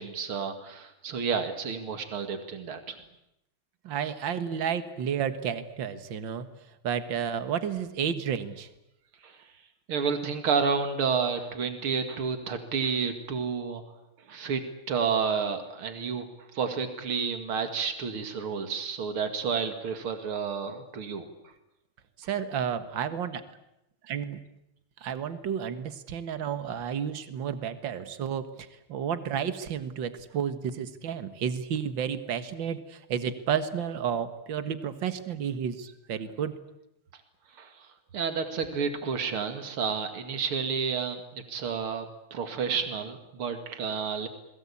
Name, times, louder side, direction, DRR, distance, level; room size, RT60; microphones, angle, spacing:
voice 1, 0.0-3.0 4.0-4.1 9.2-9.5 9.9-13.8 14.3-16.2 16.5-21.3 37.5-42.1 42.3-44.3, right 6 dB, 80° right, 7 dB, 3.0 m, -30 dB
voice 2, 3.8-6.5 6.8-8.7 22.2-23.4 24.0-24.5 25.0-28.5 28.9-36.6, right 8 dB, 65° right, 11 dB, 2.2 m, -31 dB
30.0 x 21.5 x 8.6 m, 0.85 s
omnidirectional pair, 2.3 m